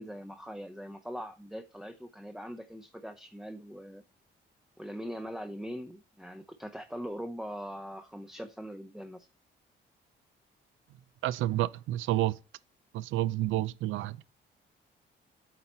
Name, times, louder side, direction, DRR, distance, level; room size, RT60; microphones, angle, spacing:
voice 1, 0.0-4.0 4.8-9.3, equal, ahead, 0.6 m, -41 dB
voice 2, 11.2-12.4 12.9-14.2, right 15 dB, 80° right, 0.4 m, -29 dB
8.1 x 4.1 x 4.3 m
cardioid pair, 90°, 20 cm